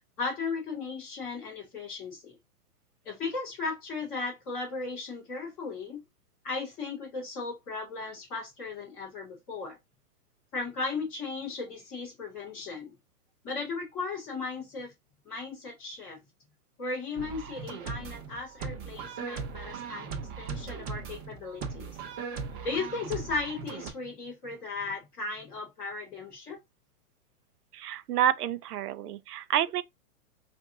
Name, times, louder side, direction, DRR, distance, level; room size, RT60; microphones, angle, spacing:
voice 1, 0.2-2.4 3.0-6.0 6.4-9.8 10.5-12.9 13.4-14.9 15.2-16.2 16.8-20.1 20.4-22.0 22.6-26.6, left 4 dB, 5° left, 0.3 m, -36 dB
sound 1, 17.1-23.9, right 5 dB, 35° right, 0.7 m, -38 dB
voice 2, 27.7-29.8, right 11 dB, 85° right, 0.5 m, -28 dB
2.7 x 2.5 x 3.4 m
hypercardioid pair, 135°, 45 cm